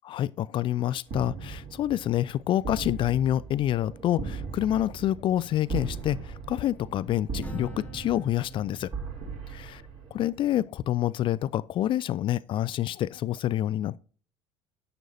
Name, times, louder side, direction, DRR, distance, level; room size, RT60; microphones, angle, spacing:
voice 1, 0.0-8.9 9.5-9.6 10.2-14.0, left 12 dB, 35° left, 0.4 m, -27 dB
sound 1, 1.1-10.6, right 5 dB, 45° right, 3.1 m, -38 dB
Acoustic guitar, 7.4-11.1, equal, 10° left, 1.2 m, -48 dB
11.0 x 8.9 x 2.7 m
figure-of-eight pair, 65°, 14 cm